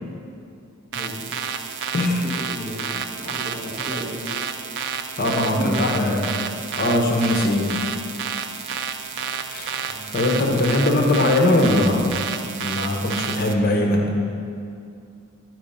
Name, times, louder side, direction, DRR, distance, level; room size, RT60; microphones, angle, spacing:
voice 1, 0.9-1.8 2.2-2.8 3.1-4.2 5.5-5.9 6.3-6.4 9.8-10.7, equal, 10° right, -9 dB, 1.9 m, -34 dB
sound 1, 0.9-13.5, right 7 dB, 55° right, 0.4 m, -30 dB
voice 2, 1.9-2.2 5.2-6.3 6.8-7.7 9.5-9.7 10.1-12.2 12.6-14.2, left 1 dB, 45° left, 1 dB, 0.8 m, -20 dB
9.4 x 4.7 x 5.3 m, 2.4 s
head